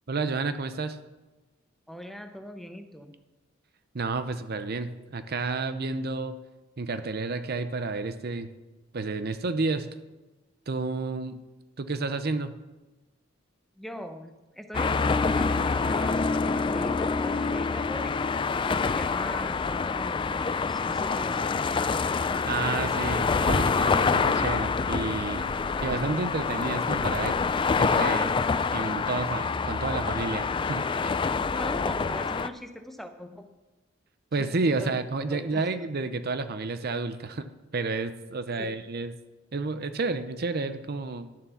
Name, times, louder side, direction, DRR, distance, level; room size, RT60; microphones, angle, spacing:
voice 1, 0.1-1.0 3.9-6.4 6.8-8.5 8.9-9.9 10.7-11.4 11.8-12.5 22.5-25.5 25.8-27.5 27.8-28.3 28.7-31.3 34.3-37.5 37.7-39.1 39.5-41.3, right 3 dB, 50° right, 10 dB, 0.6 m, -30 dB
voice 2, 1.9-3.1 13.8-18.3 18.7-21.8 31.5-33.5 34.3-34.9 35.3-35.6 38.6-38.7, equal, ahead, 6 dB, 0.8 m, -41 dB
sound 1, 14.7-32.5, left 4 dB, 25° left, 0.3 m, -26 dB
11.5 x 7.3 x 7.0 m, 1.1 s
head